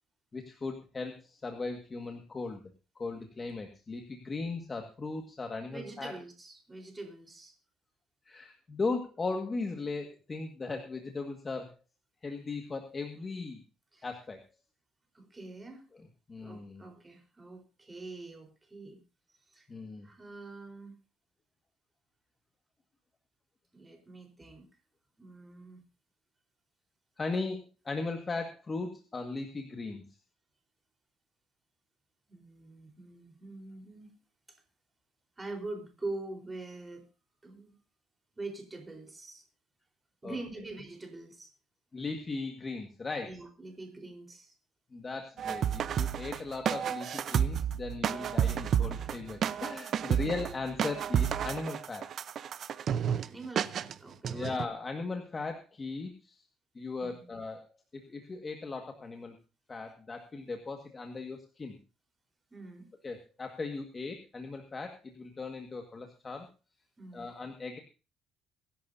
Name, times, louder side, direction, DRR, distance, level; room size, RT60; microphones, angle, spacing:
voice 1, 0.3-2.6 2.9-6.1 8.2-11.8 12.2-13.6 14.0-14.4 16.3-16.8 19.7-20.1 27.2-30.0 40.2-40.4 41.9-43.4 44.9-52.1 54.3-56.4 56.7-59.3 59.7-61.8 63.0-66.5 67.1-67.8, left 3 dB, 25° left, 4 dB, 1.7 m, -38 dB
voice 2, 5.7-7.5 13.9-14.1 15.1-15.8 16.4-19.0 19.5-19.7 20.0-20.9 23.7-24.7 25.2-25.8 32.3-34.2 35.4-37.0 37.4-37.8 38.3-39.4 40.2-41.5 43.2-44.5 49.7-50.2 53.1-54.6 57.0-57.3 62.5-62.9 67.0-67.3, right 2 dB, 15° right, 3 dB, 4.0 m, -44 dB
sound 1, 45.4-53.3 53.6-53.9 54.2-54.7, right 9 dB, 50° right, 0.7 m, -31 dB
23.0 x 11.0 x 2.7 m, 0.31 s
cardioid pair, 145°, 0 cm